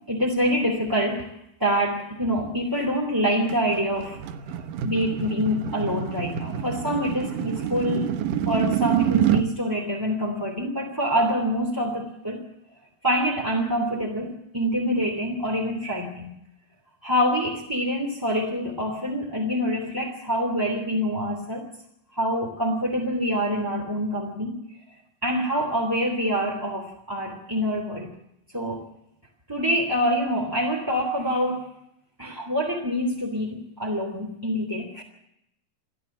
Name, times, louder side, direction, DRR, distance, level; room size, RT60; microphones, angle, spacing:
voice 1, 0.1-1.3 1.6-4.2 4.8-8.1 8.5-12.4 13.0-16.3 17.0-21.6 22.2-24.6 25.2-28.1 28.5-28.8 29.5-31.6 32.2-35.0, equal, 5° right, -1 dB, 2.6 m, -26 dB
sound 1, 3.5-9.5, right 10 dB, 70° right, 2.6 m, -27 dB
29.5 x 12.0 x 7.3 m, 0.79 s
omnidirectional pair, 4.0 m